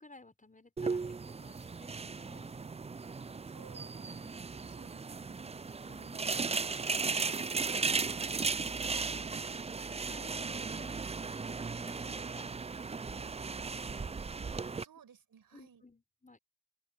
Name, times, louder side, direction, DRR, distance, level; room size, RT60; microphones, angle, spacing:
voice 1, 0.0-2.5 4.1-4.2 5.9-6.4 7.6-9.5 9.9-13.3 15.5-16.4, left 2 dB, 20° left, 6.4 m, -57 dB
sound 1, 0.8-14.8, right 4 dB, 20° right, 0.4 m, -36 dB
voice 2, 3.1-5.8 14.3-15.8, right 7 dB, 75° right, 6.0 m, -60 dB
open air
cardioid pair, 60°, 35 cm